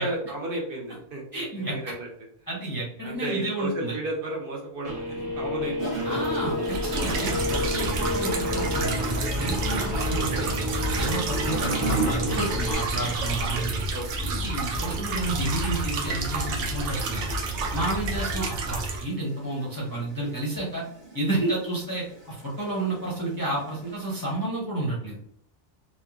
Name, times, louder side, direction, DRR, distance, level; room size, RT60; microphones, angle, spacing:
voice 1, 0.0-2.1 3.0-6.2 7.6-7.9 13.9-14.4, right 2 dB, 60° right, -1 dB, 0.7 m, -33 dB
voice 2, 1.3-1.7 2.5-4.0 6.0-10.5 11.0-13.8 14.2-17.2 17.7-20.8 21.1-25.2, right 2 dB, 25° left, -5 dB, 0.5 m, -31 dB
Guitar, 4.8-12.7, left 1 dB, 25° right, 0.8 m, -31 dB
Gurgling / Toilet flush, 5.8-24.3, right 2 dB, 40° right, 1.1 m, -38 dB
sound 1, 6.6-19.0, right 2 dB, 80° right, 0.9 m, -29 dB
2.9 x 2.2 x 2.3 m, 0.65 s
omnidirectional pair, 1.2 m